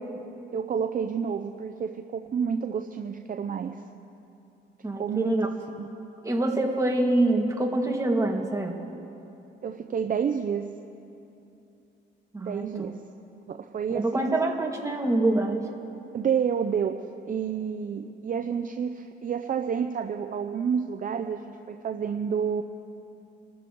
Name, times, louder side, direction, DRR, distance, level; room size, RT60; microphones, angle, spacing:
voice 1, 0.5-3.8 5.0-5.4 5.8-5.9 9.6-10.7 12.4-13.0 13.5-14.4 16.1-16.9 17.3-22.6, right 7 dB, 45° right, 5 dB, 0.6 m, -29 dB
voice 2, 4.8-5.5 6.2-8.8 12.3-12.9 13.9-15.6, right 2 dB, 15° right, 0 dB, 2.0 m, -25 dB
28.0 x 13.5 x 3.1 m, 2.8 s
cardioid pair, 90°, 20 cm